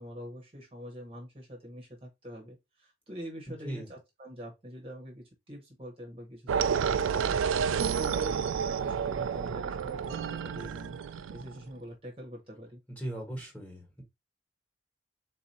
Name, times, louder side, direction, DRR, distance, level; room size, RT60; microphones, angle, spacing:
voice 1, 0.0-11.0 11.3-12.8, equal, 30° right, 1.0 m, -45 dB
sound 1, 6.5-11.6, right 7 dB, 85° right, 0.3 m, -30 dB
voice 2, 12.9-14.0, right 1 dB, 10° left, 1.3 m, -38 dB
3.9 x 2.7 x 4.1 m
head